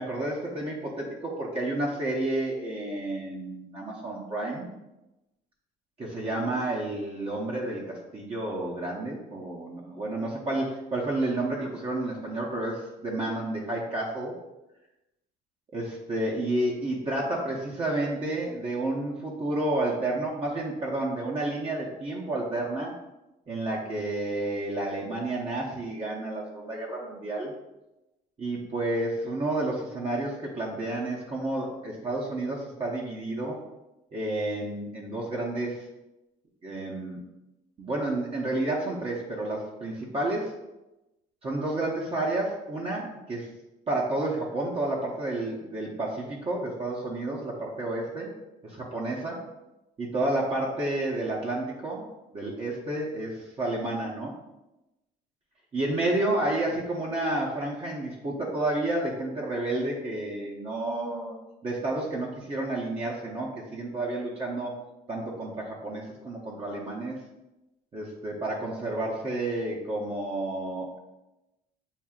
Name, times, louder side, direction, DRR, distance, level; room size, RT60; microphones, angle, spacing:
voice 1, 0.0-4.7 6.0-14.3 15.7-22.9 23.5-27.5 28.4-33.6 34.1-35.8 36.6-37.2 37.8-40.5 41.4-43.5 43.9-48.3 48.6-49.4 50.0-52.0 52.3-54.3 55.7-61.4 61.6-64.7 65.1-67.2 67.9-71.0, right 2 dB, 35° right, -4 dB, 0.8 m, -30 dB
7.2 x 2.6 x 2.4 m, 0.98 s
cardioid pair, 110°, 17 cm